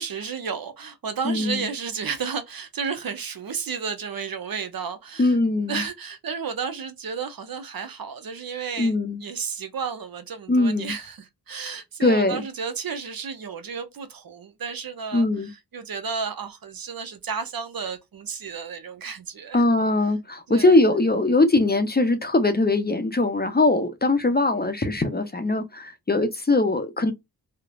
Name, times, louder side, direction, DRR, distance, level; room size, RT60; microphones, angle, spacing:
voice 1, 0.0-5.4 5.7-8.9 9.2-19.6 20.5-20.8, right 6 dB, 60° right, 0.7 m, -32 dB
voice 2, 1.2-1.7 5.2-5.8 8.8-9.2 10.5-10.9 12.0-12.4 15.1-15.5 19.5-27.1, left 2 dB, 25° left, 0.6 m, -21 dB
3.1 x 2.1 x 2.3 m
cardioid pair, 45°, 40 cm